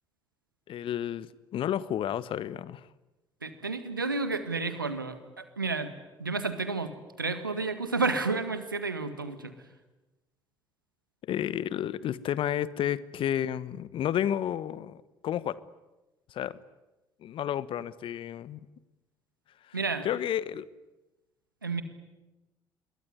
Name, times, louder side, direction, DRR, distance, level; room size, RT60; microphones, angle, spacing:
voice 1, 0.7-2.9 11.2-15.6 16.3-16.6 17.2-18.6 19.7-19.8 20.0-20.6, left 10 dB, 55° left, 18 dB, 1.2 m, -31 dB
voice 2, 3.4-5.9 6.2-6.9 7.2-9.5 19.7-20.1 21.6-21.8, right 3 dB, 90° right, 10 dB, 1.8 m, -31 dB
26.0 x 22.5 x 9.8 m, 1.1 s
figure-of-eight pair, 45°, 11 cm